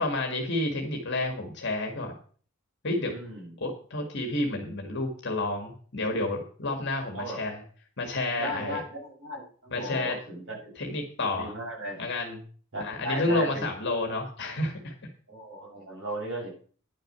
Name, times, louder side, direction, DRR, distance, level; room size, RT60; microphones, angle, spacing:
voice 1, 0.0-2.2 2.8-3.1 3.6-7.6 8.0-8.8 9.7-10.2 10.8-11.5 12.0-12.4 12.8-14.9, left 2 dB, 55° left, 4 dB, 1.8 m, -30 dB
voice 2, 3.1-3.5 7.1-7.4 8.4-10.7 11.3-12.0 12.7-13.6 15.3-16.5, right 1 dB, 65° right, -3 dB, 7.1 m, -36 dB
10.0 x 6.5 x 6.7 m, 0.44 s
head